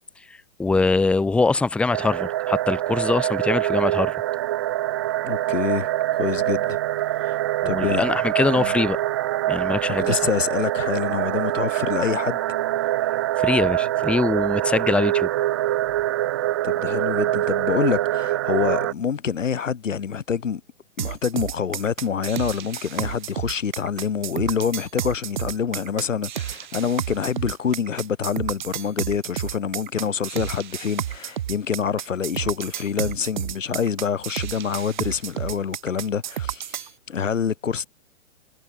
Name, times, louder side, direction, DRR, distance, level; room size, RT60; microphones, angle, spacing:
voice 1, 0.3-4.2 7.6-9.0 9.5-10.3 13.4-15.3, left 3 dB, 5° left, 3.4 m, -23 dB
sound 1, 1.9-18.9, right 14 dB, 20° right, 1.0 m, -24 dB
voice 2, 5.2-6.8 7.2-7.4 7.6-8.0 8.6-8.7 10.0-12.4 16.6-20.6 21.0-37.9, left 7 dB, 75° left, 4.6 m, -26 dB
sound 2, 21.0-36.9, right 11 dB, 35° right, 6.9 m, -31 dB
hypercardioid pair, 175°, 38 cm